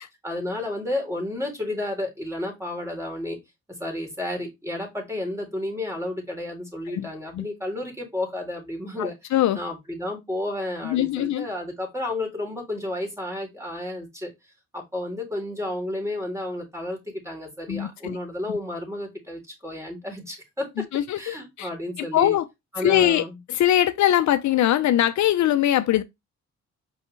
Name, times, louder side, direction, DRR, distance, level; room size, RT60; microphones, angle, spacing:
voice 1, 0.2-3.4 3.7-9.1 9.5-14.3 14.7-20.8 21.2-22.4 22.7-23.4, left 1 dB, 10° right, 3.8 m, -31 dB
voice 2, 9.0-9.6 10.8-11.5 17.7-18.2 20.8-21.7 22.0-22.5 22.8-26.0, left 12 dB, 65° left, 0.7 m, -22 dB
5.5 x 5.5 x 3.3 m
cardioid pair, 90°, 30 cm